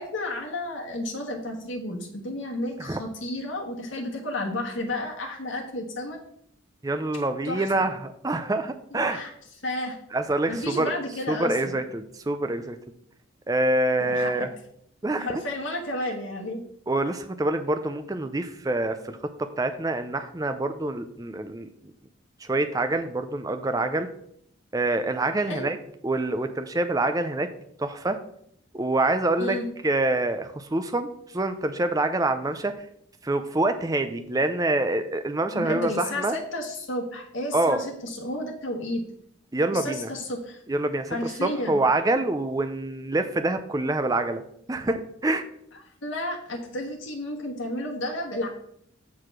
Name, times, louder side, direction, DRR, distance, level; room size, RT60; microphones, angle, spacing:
voice 1, 0.0-6.2 7.4-7.8 8.9-9.3 9.6-9.9 10.5-11.8 14.0-14.5 15.2-16.6 25.5-25.6 29.4-29.7 35.5-39.0 39.7-40.6 41.1-41.8 46.0-48.5, left 1 dB, 65° left, 0 dB, 1.3 m, -32 dB
voice 2, 6.8-9.2 10.1-10.9 11.3-12.8 13.5-14.5 15.0-15.4 16.9-21.7 22.4-24.1 24.7-25.8 26.0-27.5 27.8-28.2 28.7-29.6 29.8-32.7 33.2-36.4 37.5-37.9 39.5-40.1 40.7-44.4 44.7-45.4, right 2 dB, 15° right, 8 dB, 0.4 m, -26 dB
6.7 x 4.7 x 5.9 m, 0.69 s
head